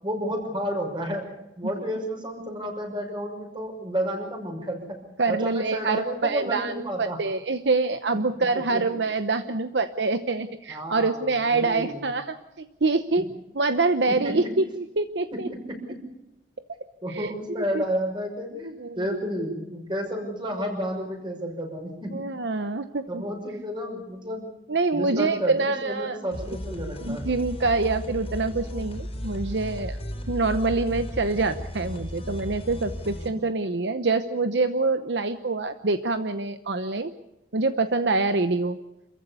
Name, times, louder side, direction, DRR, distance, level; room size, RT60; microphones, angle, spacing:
voice 1, 0.0-1.3 1.6-5.0 5.3-7.2 8.5-8.8 10.7-12.1 13.2-13.3 14.2-14.5 15.3-16.0 17.0-22.2 23.1-24.5 24.9-27.3 33.3-33.4, equal, 25° right, 2 dB, 5.9 m, -31 dB
voice 2, 5.2-13.3 13.5-15.5 17.1-17.8 18.8-19.1 22.1-23.2 24.7-26.2 27.0-30.0 30.3-37.1 37.5-38.8, right 3 dB, 70° right, 10 dB, 0.9 m, -26 dB
sound 1, 26.3-33.3, equal, 35° left, 3.7 m, -35 dB
27.0 x 15.0 x 8.4 m, 0.90 s
head